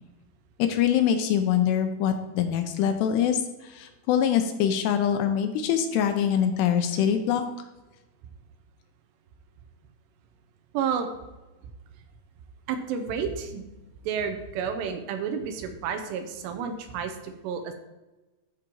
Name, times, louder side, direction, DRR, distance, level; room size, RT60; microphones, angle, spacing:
voice 1, 0.6-7.4, left 9 dB, 80° left, 7 dB, 2.6 m, -24 dB
voice 2, 10.7-11.1 12.7-13.6 14.0-17.8, right 7 dB, 80° right, 6 dB, 2.8 m, -30 dB
13.5 x 5.0 x 3.0 m, 1.1 s
omnidirectional pair, 5.1 m